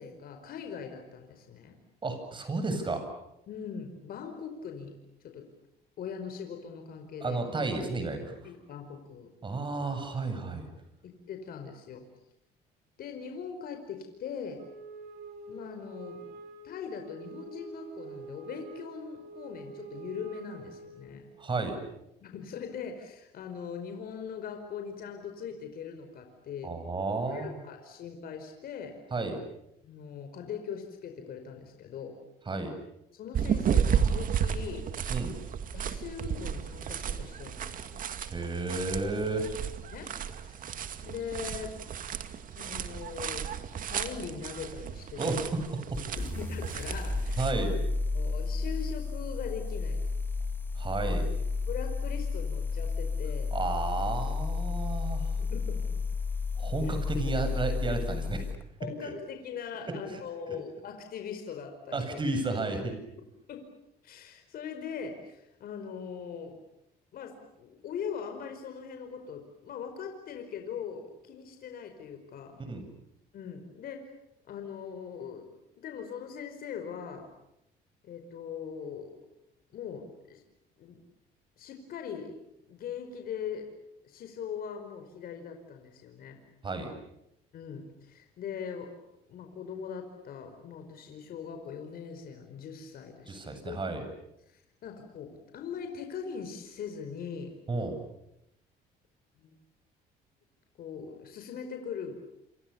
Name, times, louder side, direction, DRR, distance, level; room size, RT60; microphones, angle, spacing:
voice 1, 0.0-1.8 3.5-4.9 5.2-5.4 6.0-7.4 8.4-9.3 11.0-12.0 13.0-14.6 15.5-16.2 16.6-21.3 22.2-26.7 27.3-29.0 29.8-32.2 33.1-34.8 35.7-38.0 39.9-40.1 40.4-41.8 42.5-43.5 43.9-45.5 46.2-47.5 48.1-50.0 51.7-53.5 55.4-55.8 56.8-56.9 58.8-62.2 63.5-63.6 64.0-66.6 67.1-72.6 73.3-74.0 74.5-75.5 75.8-77.3 78.0-79.1 79.7-80.4 80.8-81.0 81.6-82.3 82.7-83.7 84.0-86.4 87.5-88.9 89.3-93.8 94.5-97.5 99.4-99.6 100.8-102.2, left 7 dB, 60° left, 5 dB, 5.0 m, -41 dB
voice 2, 2.0-3.1 7.2-8.5 9.4-10.7 21.4-21.8 26.6-27.6 29.1-29.4 32.5-32.7 35.1-35.3 38.3-39.5 45.2-45.6 45.9-46.0 47.4-47.8 50.8-51.3 53.5-55.3 56.6-58.5 59.0-59.1 59.9-60.2 60.5-60.6 61.9-63.0 72.6-72.8 86.6-86.9 93.3-94.0 97.7-98.0, right 3 dB, 30° right, 8 dB, 8.0 m, -32 dB
Wind instrument woodwind instrument, 14.6-21.4, right 3 dB, 75° right, 6.7 m, -46 dB
sound 1, 33.3-47.5, right 8 dB, 55° right, 2.3 m, -33 dB
sound 2, 45.9-58.6, left 4 dB, 10° left, 3.2 m, -32 dB
28.5 x 28.5 x 7.1 m, 0.82 s
cardioid pair, 110°, 17 cm